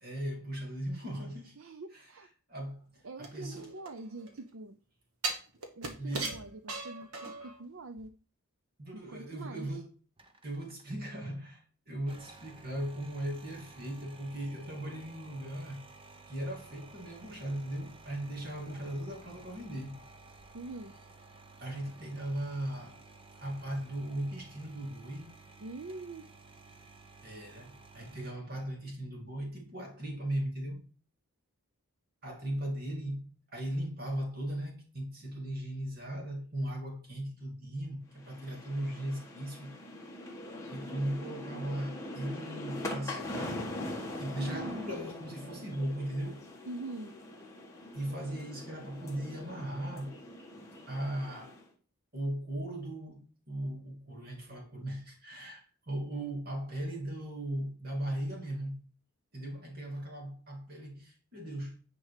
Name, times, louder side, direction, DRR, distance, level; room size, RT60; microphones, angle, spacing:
voice 1, 0.0-1.6 1.9-2.1 2.5-3.7 6.0-6.4 8.8-9.9 10.4-15.9 16.3-20.0 21.6-23.0 23.4-25.3 27.2-30.9 32.2-39.7 40.7-43.6 44.2-46.5 47.9-50.2 50.9-51.6 52.1-58.9 59.3-61.8, right 1 dB, 45° right, 2.5 m, -38 dB
voice 2, 1.6-2.3 3.0-4.8 5.8-8.1 8.9-9.8 20.5-20.9 25.6-26.3 44.4-44.8 46.7-47.2, right 2 dB, 65° right, 0.6 m, -44 dB
sound 1, 3.2-4.4 5.2-7.6 8.0-8.1, right 3 dB, 85° right, 1.6 m, -38 dB
sound 2, 10.2-11.3 12.0-28.3, right 3 dB, 25° right, 0.8 m, -54 dB
sound 3, 38.2-51.7, left 1 dB, 15° left, 1.5 m, -42 dB
9.6 x 4.6 x 4.8 m
head